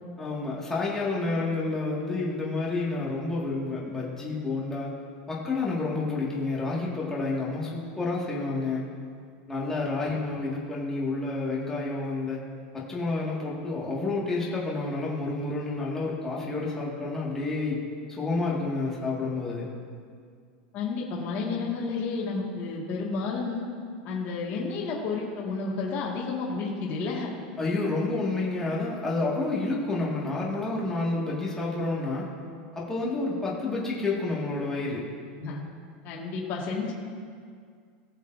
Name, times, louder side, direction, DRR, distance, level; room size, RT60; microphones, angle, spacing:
voice 1, 0.2-4.9 5.3-8.8 9.5-12.4 12.7-17.8 18.1-19.7 27.6-32.3 32.7-35.0, left 3 dB, 10° left, -5 dB, 1.8 m, -29 dB
voice 2, 20.7-23.7 24.1-27.3 35.4-35.6 36.0-36.9, left 4 dB, 40° left, -4 dB, 1.8 m, -31 dB
19.5 x 6.9 x 2.6 m, 2.1 s
supercardioid pair, 150°, 6 cm